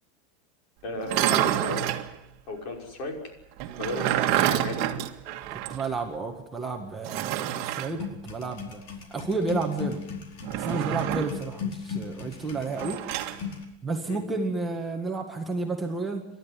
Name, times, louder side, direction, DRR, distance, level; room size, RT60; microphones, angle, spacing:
voice 1, 0.8-1.9 2.5-3.2 3.8-4.9 14.1-14.2, left 2 dB, 45° left, 3 dB, 5.7 m, -34 dB
sound 1, 1.0-2.1 3.6-5.9 6.2-6.3 7.0-7.9 10.4-11.4 12.8-13.4, right 12 dB, 45° right, 1.9 m, -27 dB
voice 2, 5.5-8.8 9.1-10.0 10.5-13.0 13.8-16.3, right 3 dB, 10° right, 2 dB, 1.8 m, -31 dB
sound 2, 8.0-13.6, left 6 dB, 65° left, 4.8 m, -37 dB
29.0 x 12.5 x 9.9 m, 0.85 s
supercardioid pair, 160°, 0 cm